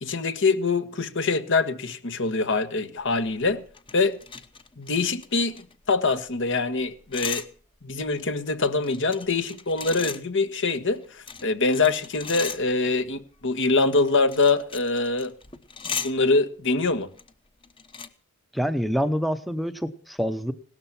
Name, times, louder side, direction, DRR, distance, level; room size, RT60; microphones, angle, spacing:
voice 1, 0.0-3.6 3.9-4.2 4.8-5.5 5.9-7.4 7.8-15.3 15.8-17.1, left 3 dB, 60° left, 1.3 m, -24 dB
sound 1, 3.1-6.3 6.6-6.7 6.8-7.5 7.9-10.2 10.9-13.0 13.7-16.1 16.9-17.3 17.6-18.1, left 6 dB, 25° left, 1.0 m, -37 dB
voice 2, 18.5-20.5, equal, ahead, 0.8 m, -26 dB
17.5 x 12.5 x 5.9 m
head